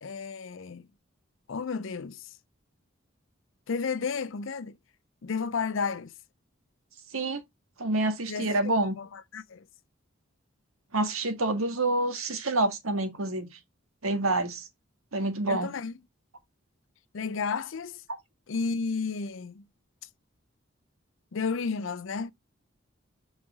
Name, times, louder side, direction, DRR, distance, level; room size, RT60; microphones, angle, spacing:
voice 1, 0.0-0.9 1.5-2.3 3.7-4.8 5.2-6.1 8.3-9.7 15.5-16.0 17.1-18.0 18.5-19.7 21.3-22.3, left 5 dB, 70° left, 0.5 m, -32 dB
voice 2, 7.1-7.4 7.8-8.9 10.9-13.5 14.0-14.7 15.1-15.7, right 2 dB, 85° right, 1.7 m, -27 dB
5.5 x 4.9 x 3.6 m
head